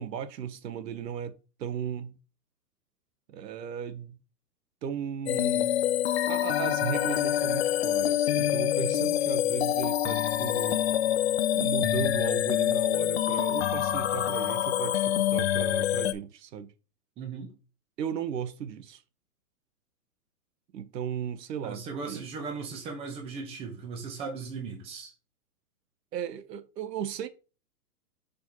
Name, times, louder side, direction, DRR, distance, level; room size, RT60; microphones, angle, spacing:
voice 1, 0.0-2.1 3.3-4.2 4.8-5.7 6.3-10.8 11.5-16.7 18.0-19.0 20.7-22.2 26.1-27.3, right 8 dB, 90° right, 1.0 m, -36 dB
sound 1, 5.3-16.1, left 11 dB, 45° left, 0.4 m, -26 dB
voice 2, 17.2-17.5 21.6-25.1, right 5 dB, 10° right, 0.9 m, -37 dB
6.4 x 5.0 x 3.0 m
hypercardioid pair, 160°, 48 cm